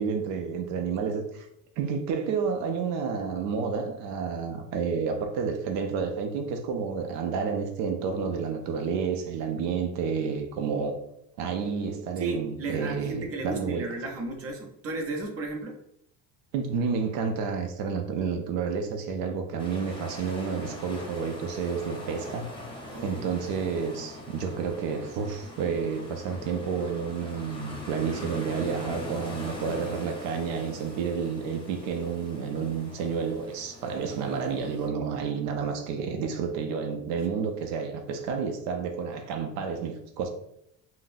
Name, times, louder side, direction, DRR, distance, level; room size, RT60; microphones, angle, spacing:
voice 1, 0.0-1.5 1.8-11.0 11.4-13.9 16.5-22.5 23.0-40.3, right 6 dB, 90° right, 5 dB, 0.5 m, -30 dB
voice 2, 12.2-15.8 22.8-23.2, right 3 dB, 40° right, 2 dB, 0.8 m, -34 dB
sound 1, 19.6-34.9, left 1 dB, 15° left, 0.7 m, -42 dB
3.7 x 2.0 x 2.6 m, 0.76 s
cardioid pair, 105°, 35 cm